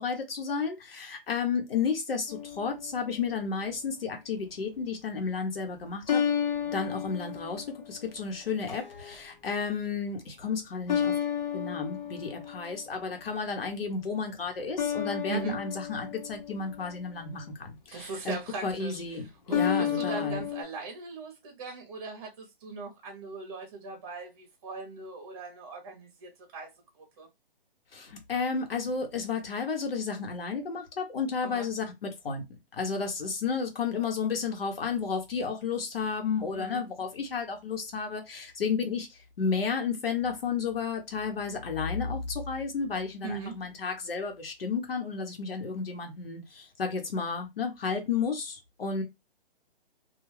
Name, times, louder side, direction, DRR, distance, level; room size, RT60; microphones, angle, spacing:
voice 1, 0.0-6.2 6.7-11.1 11.5-18.4 18.6-20.4 27.9-32.4 32.7-49.0, left 5 dB, 75° left, 1.0 m, -32 dB
sound 1, 2.3-3.1 6.1-8.1 8.7-9.2 10.9-12.9 14.8-17.2 19.5-20.6, left 8 dB, 50° left, 0.8 m, -31 dB
voice 2, 17.9-19.0 19.5-26.7 27.0-27.3 31.4-31.7 36.5-36.8 43.2-43.5, right 4 dB, 25° right, 0.7 m, -39 dB
2.4 x 2.2 x 3.2 m
hypercardioid pair, 155°, 29 cm